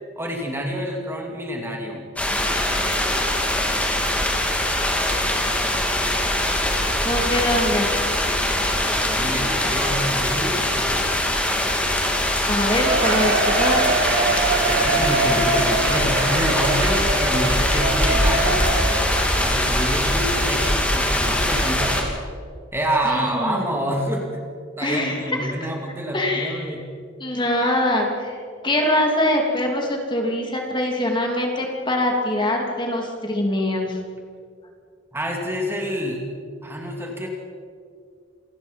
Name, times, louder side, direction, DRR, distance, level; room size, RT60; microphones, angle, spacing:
voice 1, 0.2-2.0 8.8-11.0 14.7-18.6 19.4-22.1 22.7-24.4 24.8-26.9 35.1-36.2 36.6-37.3, equal, 10° right, 1 dB, 2.6 m, -27 dB
sound 1, 2.2-22.0, left 1 dB, 5° left, 3.0 m, -22 dB
voice 2, 7.0-7.9 12.5-13.8 23.0-23.6 24.8-25.7 26.1-26.7 27.2-28.4 28.6-34.0, left 1 dB, 25° left, 1 dB, 3.1 m, -23 dB
Cheering, 12.8-20.5 20.9-21.0 21.7-21.8, right 3 dB, 60° right, 3.6 m, -24 dB
28.0 x 18.5 x 5.4 m, 2.1 s
head